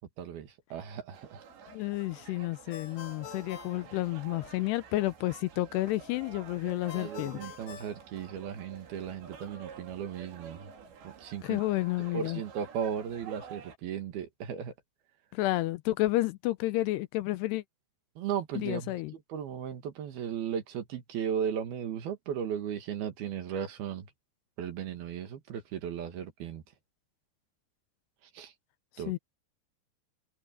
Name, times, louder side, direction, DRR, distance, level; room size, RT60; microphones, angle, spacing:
voice 1, 0.2-1.5 6.9-10.7 11.0-11.6 12.1-14.7 18.2-24.1 24.6-26.6 28.3-28.5 29.0-29.2, right 8 dB, 65° right, 3.5 m, -36 dB
sound 1, 1.1-13.8, right 7 dB, 85° right, 5.4 m, -49 dB
voice 2, 1.7-7.4 11.4-12.4 15.3-17.6 18.6-19.1 29.1-29.2, left 17 dB, 80° left, 2.7 m, -31 dB
Ringtone, 2.7-4.7 6.9-8.8, left 9 dB, 65° left, 3.3 m, -48 dB
omnidirectional pair, 5.0 m